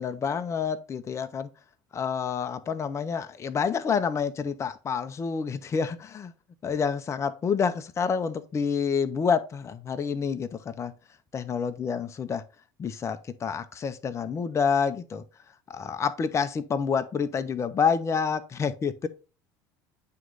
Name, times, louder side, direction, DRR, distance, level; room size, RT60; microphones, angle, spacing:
voice 1, 0.0-1.5 1.9-6.3 6.6-10.9 11.3-12.4 12.8-15.2 15.7-19.1, left 6 dB, 30° left, 0.6 m, -28 dB
9.2 x 3.1 x 3.8 m
supercardioid pair, 95°, 10 cm